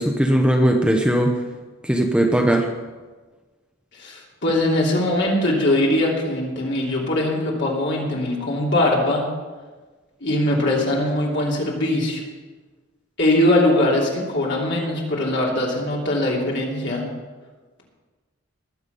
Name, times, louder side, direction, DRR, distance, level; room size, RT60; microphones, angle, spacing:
voice 1, 0.0-1.3 1.8-2.7, right 1 dB, 5° right, 2 dB, 0.8 m, -18 dB
voice 2, 4.0-9.2 10.2-12.2 13.2-17.0, left 1 dB, 55° left, -3 dB, 3.1 m, -21 dB
20.5 x 7.2 x 5.4 m, 1.3 s
head